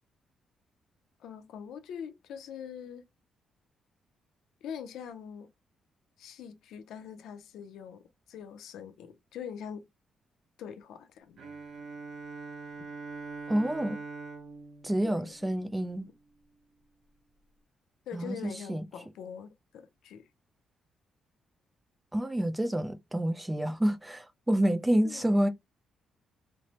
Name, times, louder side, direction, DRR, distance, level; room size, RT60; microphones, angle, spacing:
voice 1, 1.2-3.0 4.6-5.5 6.2-9.9 10.6-11.4 15.0-15.3 18.1-20.3 23.7-23.8 25.0-25.5, left 8 dB, 90° left, 0.5 m, -43 dB
Bowed string instrument, 11.4-16.1, right 4 dB, 60° right, 0.8 m, -43 dB
voice 2, 13.5-14.0 14.8-16.1 18.1-18.4 18.7-18.8 22.1-25.5, right 1 dB, 10° right, 0.3 m, -28 dB
3.1 x 2.0 x 2.8 m
cardioid pair, 160°, 0 cm